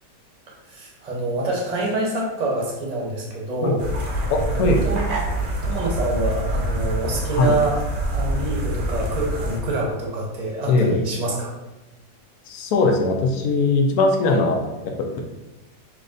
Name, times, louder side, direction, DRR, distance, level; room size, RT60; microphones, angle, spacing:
voice 1, 0.5-3.8 4.5-5.0 5.6-7.8 8.1-11.5 14.3-14.4, right 2 dB, 35° right, -3 dB, 0.7 m, -26 dB
sound 1, 3.8-9.6, right 1 dB, 75° right, 0.4 m, -25 dB
voice 2, 4.3-4.8 7.4-7.5 10.7-11.0 12.5-15.2, left 3 dB, 70° left, 2 dB, 1.1 m, -20 dB
6.2 x 2.4 x 2.5 m, 1.0 s
omnidirectional pair, 1.8 m